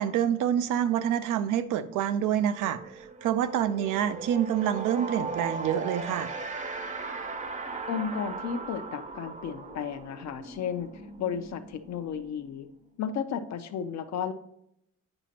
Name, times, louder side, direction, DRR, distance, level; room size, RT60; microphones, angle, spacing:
voice 1, 0.0-6.3, right 10 dB, 85° right, 11 dB, 0.5 m, -27 dB
sound 1, 1.9-2.0 2.3-12.9, right 4 dB, 25° right, 0.6 m, -38 dB
voice 2, 7.9-10.9 11.2-12.7 13.0-14.3, left 7 dB, 60° left, 9 dB, 0.6 m, -33 dB
8.8 x 5.0 x 2.8 m, 0.78 s
cardioid pair, 90°, 30 cm